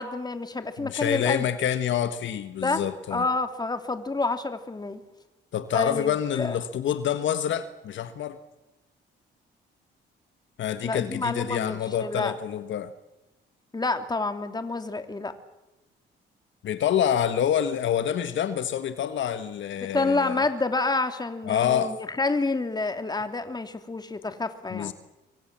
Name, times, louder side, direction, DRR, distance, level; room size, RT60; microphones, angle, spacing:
voice 1, 0.0-1.5 2.6-2.8 3.1-5.0 5.7-6.6 10.8-12.3 13.7-15.3 19.8-24.9, left 3 dB, 20° left, 7 dB, 2.9 m, -28 dB
voice 2, 0.8-3.3 5.5-8.4 10.6-12.9 16.6-20.4 21.4-22.0 24.7-24.9, left 9 dB, 70° left, 10 dB, 1.5 m, -27 dB
26.5 x 23.5 x 7.5 m, 1.0 s
cardioid pair, 90°, 20 cm